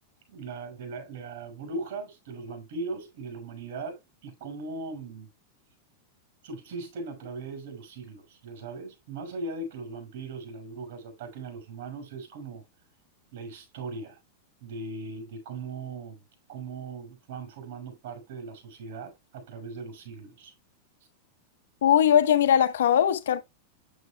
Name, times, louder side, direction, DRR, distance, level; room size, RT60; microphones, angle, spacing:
voice 1, 0.3-5.3 6.4-12.6 13.3-14.2 14.6-16.2 16.5-20.5, right 3 dB, 65° right, 5.5 m, -39 dB
voice 2, 21.8-23.4, left 9 dB, 85° left, 1.0 m, -20 dB
9.2 x 8.1 x 2.3 m
supercardioid pair, 145°, 0 cm